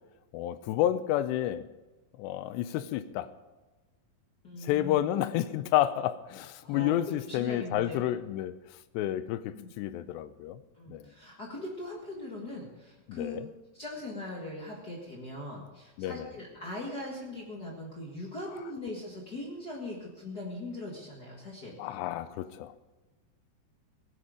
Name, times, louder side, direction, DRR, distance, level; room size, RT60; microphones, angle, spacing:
voice 1, 0.3-1.7 2.2-3.3 4.6-8.5 8.9-10.6 10.9-11.1 13.1-13.5 16.0-16.3 21.8-22.7, left 12 dB, 85° left, 13 dB, 2.8 m, -30 dB
voice 2, 4.4-5.1 6.6-8.0 9.5-9.7 10.8-13.4 13.7-21.7, left 1 dB, 50° left, -3 dB, 1.2 m, -40 dB
18.0 x 10.0 x 5.1 m, 1.2 s
omnidirectional pair, 4.9 m